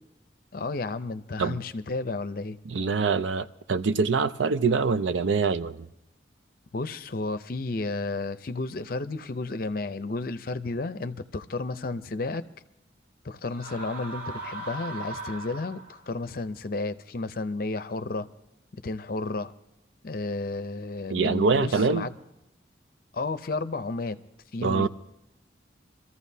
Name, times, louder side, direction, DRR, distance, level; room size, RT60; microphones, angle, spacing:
voice 1, 0.5-2.6 6.7-12.4 13.2-18.3 18.8-19.5 20.0-22.1 23.1-24.2 24.5-24.9, left 3 dB, 50° left, 0.6 m, -32 dB
voice 2, 2.7-5.9 21.1-22.1 24.6-24.9, right 4 dB, 75° right, 0.5 m, -24 dB
sound 1, 13.5-16.1, right 2 dB, 50° right, 1.8 m, -38 dB
24.0 x 14.0 x 2.7 m
head